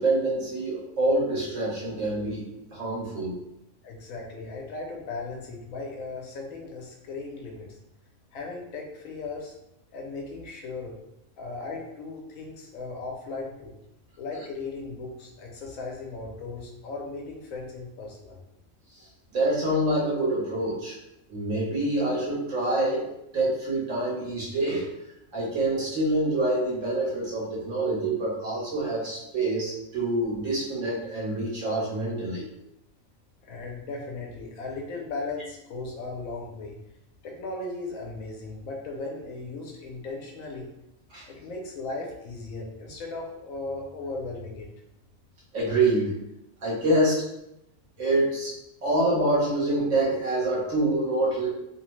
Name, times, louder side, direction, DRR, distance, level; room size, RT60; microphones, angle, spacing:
voice 1, 0.0-2.4 2.7-3.3 19.3-21.0 21.3-23.1 23.3-24.9 25.3-32.4 41.1-41.3 45.5-46.1 46.6-47.2 48.0-48.5 48.8-51.5, right 2 dB, 70° right, -5 dB, 1.3 m, -26 dB
voice 2, 3.8-7.8 8.3-9.5 9.9-11.0 11.4-13.7 14.2-18.4 33.4-36.8 37.2-40.7 41.3-44.7, left 3 dB, 80° left, 0 dB, 1.1 m, -37 dB
3.0 x 2.1 x 3.0 m, 0.85 s
omnidirectional pair, 1.4 m